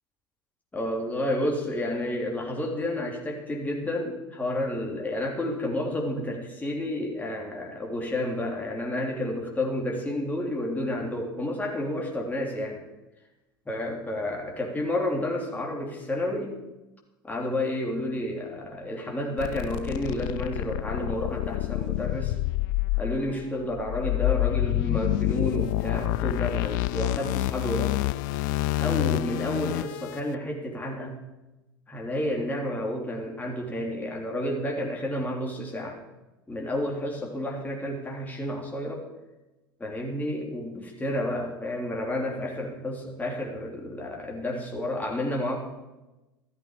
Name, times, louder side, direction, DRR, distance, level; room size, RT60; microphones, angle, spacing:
voice 1, 0.7-12.8 13.7-16.6 17.2-22.3 23.0-28.0 28.8-31.2 31.9-36.0 36.5-39.1 39.8-45.6, left 1 dB, 15° left, 0 dB, 3.1 m, -30 dB
sound 1, 19.4-30.2, left 18 dB, 60° left, 0.3 m, -28 dB
14.0 x 13.0 x 5.1 m, 1.0 s
figure-of-eight pair, 70°, 12 cm